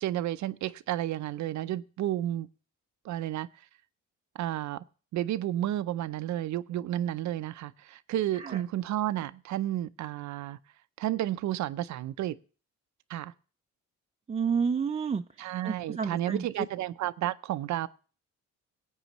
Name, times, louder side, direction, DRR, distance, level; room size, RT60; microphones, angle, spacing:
voice 1, 0.0-2.5 3.0-3.5 4.3-4.8 5.1-10.6 11.0-12.4 13.1-13.3 15.4-17.9, right 13 dB, 70° right, 0.6 m, -31 dB
voice 2, 14.3-16.4, right 6 dB, 20° right, 0.4 m, -30 dB
18.0 x 8.4 x 3.0 m
cardioid pair, 90°, 30 cm